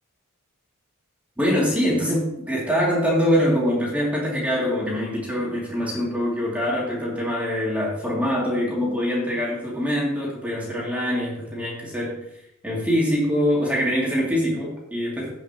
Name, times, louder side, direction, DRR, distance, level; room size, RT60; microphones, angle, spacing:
voice 1, 1.4-12.3 12.6-15.3, equal, 5° right, -5 dB, 2.5 m, -24 dB
17.0 x 5.9 x 2.9 m, 0.80 s
head